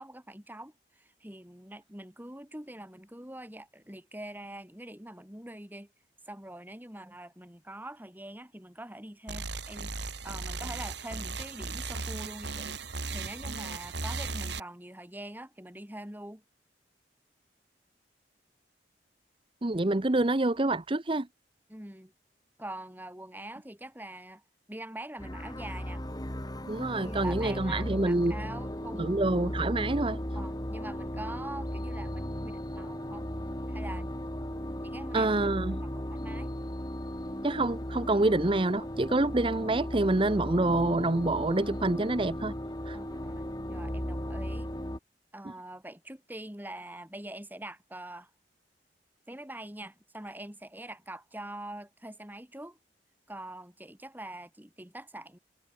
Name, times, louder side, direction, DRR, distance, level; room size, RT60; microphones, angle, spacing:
voice 1, 0.0-5.9 6.3-12.8 13.1-16.4 21.7-22.1 22.6-24.4 24.7-26.0 26.9-29.1 30.3-33.3 33.7-34.3 34.7-35.4 35.7-36.5 42.9-44.7 45.3-48.3 49.3-52.8 53.3-55.4, right 1 dB, 10° right, 3.7 m, -44 dB
sound 1, 9.3-14.6, right 3 dB, 75° right, 5.0 m, -36 dB
voice 2, 19.6-21.3 26.7-28.3 29.0-30.2 35.1-35.8 37.4-42.5 42.9-43.0, right 2 dB, 30° right, 0.8 m, -27 dB
sound 2, 25.2-45.0, equal, 20° left, 4.4 m, -36 dB
head